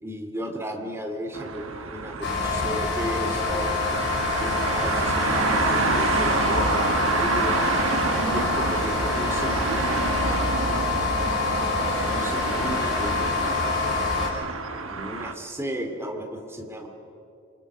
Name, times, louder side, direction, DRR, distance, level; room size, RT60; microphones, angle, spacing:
voice 1, 0.0-3.9 4.4-7.7 8.3-10.4 12.0-13.8 14.9-16.9, equal, 15° right, 4 dB, 2.5 m, -34 dB
sound 1, 1.3-15.3, right 3 dB, 85° right, 1.3 m, -28 dB
sound 2, 2.2-14.3, left 4 dB, 60° left, 4.9 m, -26 dB
27.0 x 25.0 x 6.2 m, 2.7 s
head